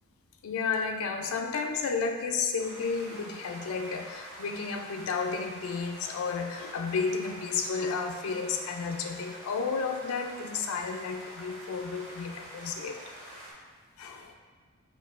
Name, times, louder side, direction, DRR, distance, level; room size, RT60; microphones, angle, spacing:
voice 1, 0.4-13.0 14.0-14.3, left 5 dB, 70° left, 4 dB, 0.4 m, -32 dB
sound 1, 2.6-13.5, equal, 65° right, 1.2 m, -46 dB
5.8 x 2.3 x 2.4 m, 1.5 s
head